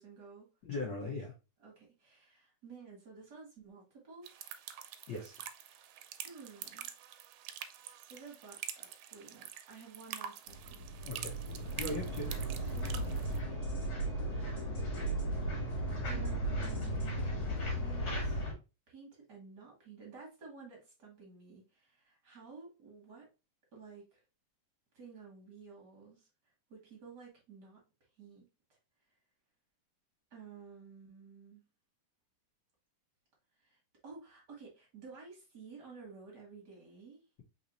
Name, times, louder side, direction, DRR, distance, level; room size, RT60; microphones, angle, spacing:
voice 1, 0.0-0.5 1.6-4.3 6.2-6.9 8.1-10.9 12.7-13.6 14.3-18.4 18.9-23.3 23.7-24.2 24.9-27.8 28.2-28.8 30.3-31.6 33.6-37.2, right 5 dB, 50° right, 1.3 m, -53 dB
voice 2, 0.7-1.3 5.1-5.4 11.0-11.3 11.8-12.3, left 2 dB, 75° left, 1.0 m, -38 dB
sound 1, 4.2-13.4, right 10 dB, 80° right, 1.7 m, -46 dB
sound 2, 10.5-18.5, right 1 dB, 45° left, 2.0 m, -36 dB
sound 3, 12.3-12.7 13.1-17.6, right 2 dB, 20° right, 0.9 m, -53 dB
4.1 x 3.8 x 2.9 m
omnidirectional pair, 3.5 m